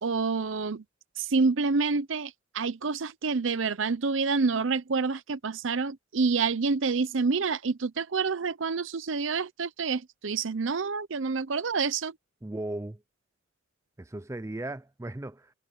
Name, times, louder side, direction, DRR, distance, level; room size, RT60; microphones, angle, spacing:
voice 1, 0.0-0.8 1.2-12.1, right 4 dB, 75° right, 0.7 m, -28 dB
voice 2, 12.4-13.0 14.0-15.5, right 1 dB, 15° right, 0.4 m, -36 dB
head